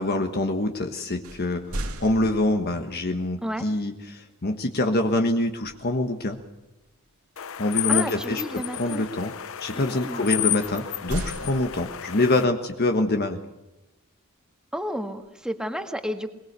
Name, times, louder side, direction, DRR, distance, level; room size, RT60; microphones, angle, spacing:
voice 1, 0.0-6.4 7.6-9.3 9.6-13.4, left 2 dB, 45° left, 5 dB, 1.4 m, -25 dB
sound 1, 1.2-2.9 5.6-5.9 6.4-6.6 10.6-12.3, right 1 dB, 70° right, 2.4 m, -36 dB
sound 2, 7.4-12.4, left 11 dB, 65° left, 0.8 m, -31 dB
voice 2, 7.9-9.1 9.7-10.2 14.7-16.3, equal, 5° right, 6 dB, 1.7 m, -32 dB
22.0 x 22.0 x 6.8 m, 0.96 s
head